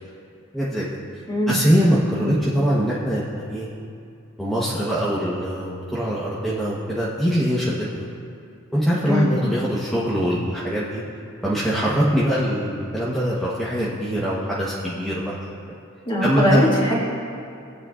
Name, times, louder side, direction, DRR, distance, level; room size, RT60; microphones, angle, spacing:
voice 1, 0.5-1.0 1.5-3.7 4.4-8.0 8.7-11.0 11.4-15.5 16.2-16.6, equal, ahead, -8 dB, 1.0 m, -23 dB
voice 2, 16.1-17.0, equal, 25° left, -5 dB, 2.1 m, -21 dB
19.0 x 8.7 x 2.5 m, 2.6 s
head